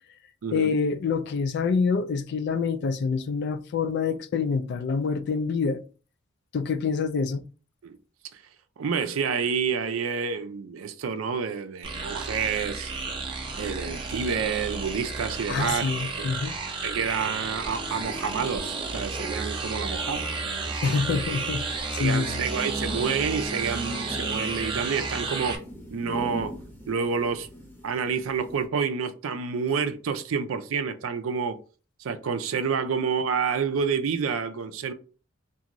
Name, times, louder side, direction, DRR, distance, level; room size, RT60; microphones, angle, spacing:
voice 1, 0.5-5.8 6.5-7.5 15.5-16.5 20.8-22.5, left 5 dB, 55° left, 0.3 m, -26 dB
voice 2, 8.8-12.9 13.6-15.9 16.2-16.3 16.8-21.2 22.0-25.6 25.9-26.6 26.9-27.5 27.8-31.6 32.0-34.9, right 6 dB, 90° right, 0.4 m, -29 dB
sound 1, 11.8-25.6, right 3 dB, 25° right, 0.5 m, -32 dB
sound 2, 20.4-28.7, equal, 10° left, 0.7 m, -43 dB
2.6 x 2.5 x 2.9 m
head